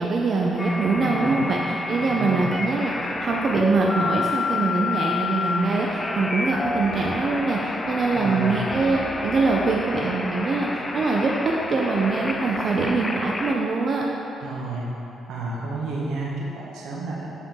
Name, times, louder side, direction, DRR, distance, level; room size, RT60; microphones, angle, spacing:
voice 1, 0.0-1.6 1.9-14.0, right 3 dB, 45° right, -2 dB, 0.6 m, -23 dB
sound 1, 0.6-13.6, left 3 dB, 25° left, 0.4 m, -29 dB
voice 2, 1.0-1.5 2.0-2.5 8.1-8.5 14.4-14.8 15.3-17.3, right 3 dB, 85° right, -4 dB, 1.2 m, -31 dB
7.9 x 4.5 x 3.8 m, 2.9 s
cardioid pair, 90°, 0 cm